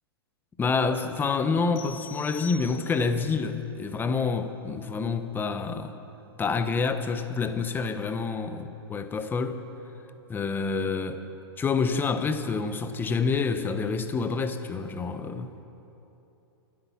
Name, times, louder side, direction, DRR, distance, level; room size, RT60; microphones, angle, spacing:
voice 1, 0.6-6.0 6.4-9.6 10.3-11.2 11.6-15.5, left 4 dB, 15° left, 0.9 m, -28 dB
sound 1, 1.8-3.3, left 8 dB, 50° left, 1.4 m, -44 dB
25.5 x 8.7 x 5.9 m
hypercardioid pair, 130°, 14 cm